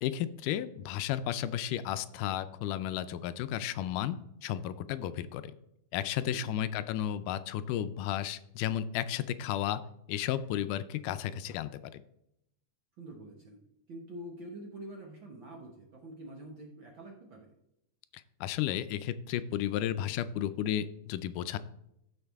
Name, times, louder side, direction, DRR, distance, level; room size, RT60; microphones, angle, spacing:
voice 1, 0.0-5.5 5.9-9.8 10.1-12.0 18.4-21.6, left 11 dB, 85° left, 13 dB, 2.1 m, -33 dB
voice 2, 6.2-6.5 13.0-13.6 13.9-17.5, right 1 dB, 55° right, 0 dB, 1.4 m, -46 dB
14.5 x 5.3 x 3.5 m, 0.79 s
omnidirectional pair, 3.7 m